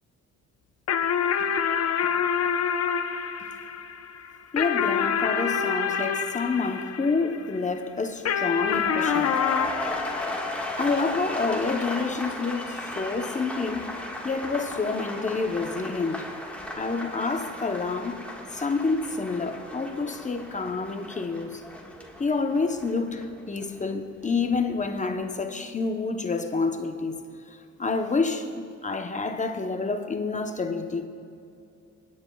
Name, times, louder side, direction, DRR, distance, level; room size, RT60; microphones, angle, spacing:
sound 1, 0.9-7.6 8.3-11.1, left 7 dB, 55° left, 0.8 m, -27 dB
voice 1, 4.5-9.4 10.8-13.9 14.2-16.3 16.8-18.2 18.5-21.6 22.2-27.2 27.8-31.1, left 4 dB, 25° left, 0.8 m, -28 dB
sound 2, 8.6-24.6 24.9-25.4, left 1 dB, 5° left, 1.5 m, -36 dB
28.5 x 9.5 x 2.3 m
cardioid pair, 90°, 30 cm